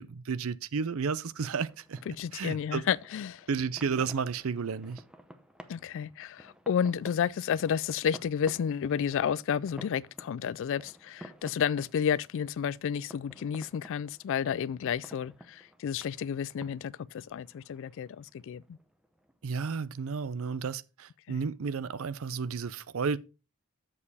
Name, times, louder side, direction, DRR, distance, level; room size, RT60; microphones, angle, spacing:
voice 1, 0.0-2.0 2.3-2.8 3.5-5.0 19.4-23.2, right 5 dB, 70° right, 0.5 m, -32 dB
sound 1, 1.3-20.3, equal, 5° right, 0.7 m, -53 dB
voice 2, 2.1-3.5 5.7-18.8 21.3-21.4, left 8 dB, 60° left, 0.3 m, -31 dB
7.3 x 6.7 x 4.1 m
head